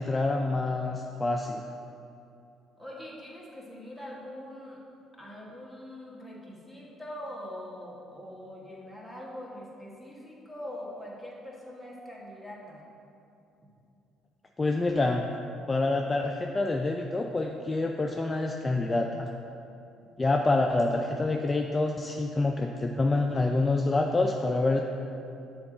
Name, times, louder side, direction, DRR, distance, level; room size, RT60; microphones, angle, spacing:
voice 1, 0.0-1.6 14.6-15.2 15.7-19.3 20.2-24.8, left 2 dB, 25° left, 2 dB, 0.3 m, -27 dB
voice 2, 2.8-4.8 5.1-12.8, left 1 dB, 5° right, -4 dB, 1.5 m, -43 dB
6.9 x 3.9 x 3.8 m, 2.7 s
supercardioid pair, 75°, 0 cm